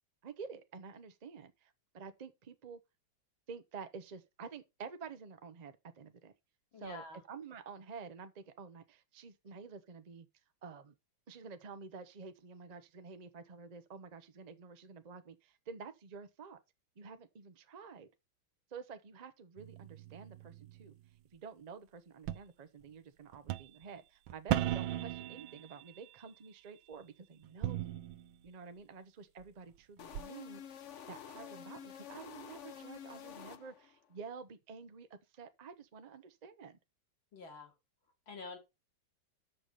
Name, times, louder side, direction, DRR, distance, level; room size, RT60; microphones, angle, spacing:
voice 1, 0.2-2.8 3.5-6.3 6.8-10.3 10.6-10.9 11.3-16.6 17.0-18.1 18.7-20.9 21.3-28.0 28.4-36.8, right 5 dB, 65° right, 0.4 m, -50 dB
voice 2, 6.7-7.2 37.3-37.7 38.3-38.6, left 3 dB, 75° left, 3.2 m, -47 dB
sound 1, 19.6-20.9 22.3-22.4 23.3-23.9 24.3-26.2 27.4-28.5 29.4-29.5 30.1-30.2, right 12 dB, 85° right, 1.4 m, -37 dB
sound 2, 30.0-34.1, left 9 dB, 55° left, 0.8 m, -49 dB
6.7 x 5.9 x 5.5 m
omnidirectional pair, 2.2 m